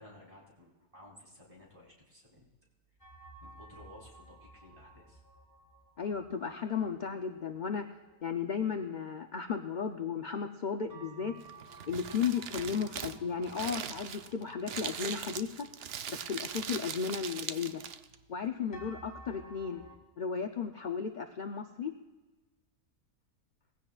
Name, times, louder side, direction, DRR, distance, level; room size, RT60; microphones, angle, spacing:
voice 1, 0.0-2.5 3.4-5.2 19.8-20.0, left 1 dB, 20° right, -4 dB, 3.6 m, -55 dB
sound 1, 3.0-9.8 10.1-10.2 10.9-16.9 17.4-17.5 18.7-20.0, right 2 dB, 10° left, 1.9 m, -55 dB
voice 2, 6.0-7.9 8.2-11.3 11.9-15.7 16.1-17.8 18.3-19.8 20.2-21.9, left 6 dB, 60° left, 6 dB, 0.4 m, -34 dB
Crumpling crinkling, 11.4-18.2, right 8 dB, 65° right, 0.6 m, -41 dB
20.0 x 15.5 x 2.4 m, 1.3 s
omnidirectional pair, 1.6 m